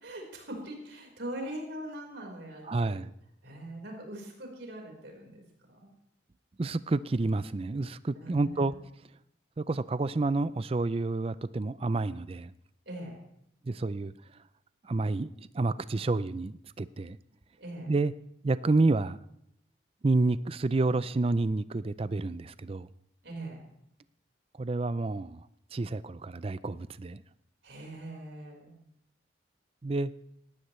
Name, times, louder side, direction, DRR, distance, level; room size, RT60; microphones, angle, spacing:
voice 1, 0.0-3.0 3.4-5.9 8.1-8.7 12.9-13.2 17.6-17.9 23.2-23.6 27.6-28.7, right 1 dB, 75° right, 1 dB, 4.5 m, -41 dB
voice 2, 2.7-3.1 6.6-8.7 9.6-12.5 13.7-14.1 14.9-15.3 15.5-17.2 17.9-18.1 18.4-19.2 20.0-22.9 24.6-25.4 25.7-27.2 29.8-30.1, right 3 dB, 30° right, 16 dB, 0.4 m, -29 dB
19.0 x 14.5 x 3.2 m, 0.75 s
head